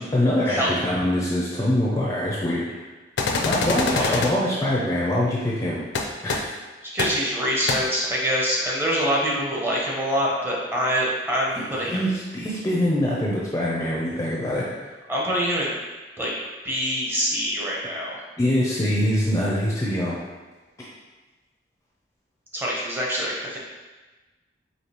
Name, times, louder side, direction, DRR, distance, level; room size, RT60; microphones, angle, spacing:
voice 1, 0.0-2.6 3.4-5.8 6.2-6.5 11.6-14.6 18.4-20.2, left 1 dB, 20° left, -5 dB, 0.5 m, -24 dB
sound 1, 3.2-4.3 5.9-6.0 6.3-6.4 7.0-7.1 7.7-7.8, left 3 dB, 70° left, 0.4 m, -24 dB
voice 2, 6.9-12.0 15.1-15.7 16.2-16.3 16.6-18.2 22.5-23.6, equal, 10° right, -5 dB, 0.8 m, -25 dB
4.8 x 2.7 x 2.9 m, 1.2 s
head